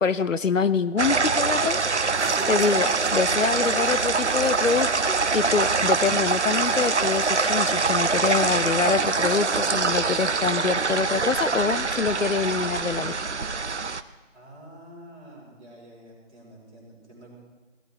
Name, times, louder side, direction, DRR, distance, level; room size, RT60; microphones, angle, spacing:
voice 1, 0.0-2.2 2.5-13.1, left 5 dB, 85° left, 15 dB, 0.8 m, -25 dB
sound 1, 1.0-14.0, right 4 dB, 65° right, 0.8 m, -24 dB
sound 2, 2.2-7.5, equal, 65° left, 2.9 m, -43 dB
voice 2, 14.3-17.3, right 1 dB, ahead, -32 dB, 2.4 m, -49 dB
18.0 x 14.5 x 4.7 m, 1.2 s
figure-of-eight pair, 180°, 37 cm